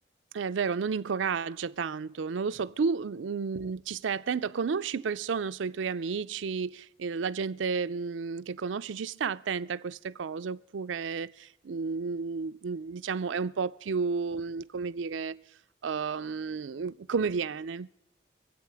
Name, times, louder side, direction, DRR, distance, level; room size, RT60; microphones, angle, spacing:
voice 1, 0.3-15.4 15.8-17.9, right 5 dB, 85° right, 0.5 m, -32 dB
24.5 x 8.3 x 4.7 m
head